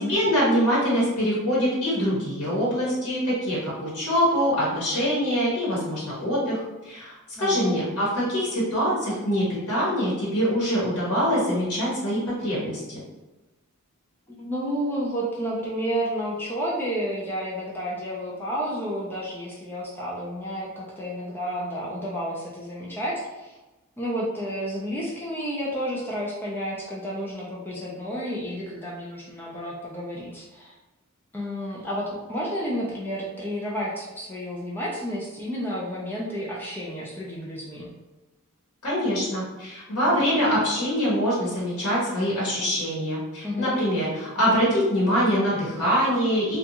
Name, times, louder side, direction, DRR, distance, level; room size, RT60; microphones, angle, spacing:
voice 1, 0.0-13.0 38.8-46.6, equal, 75° left, -7 dB, 1.0 m, -24 dB
voice 2, 7.4-7.8 14.4-23.6 24.0-30.7 31.3-37.9 43.4-43.8, equal, 10° left, -5 dB, 0.4 m, -31 dB
2.5 x 2.2 x 2.8 m, 1.1 s
head